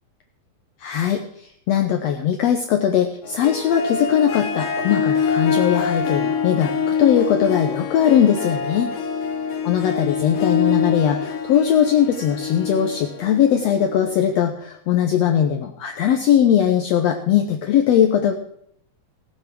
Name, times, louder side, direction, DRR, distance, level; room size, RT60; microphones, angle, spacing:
voice 1, 0.8-8.9 9.6-18.3, left 9 dB, 80° left, 4 dB, 1.5 m, -20 dB
Harp, 3.2-14.4, left 6 dB, 65° left, 1.6 m, -25 dB
16.5 x 7.6 x 6.0 m, 0.70 s
omnidirectional pair, 4.1 m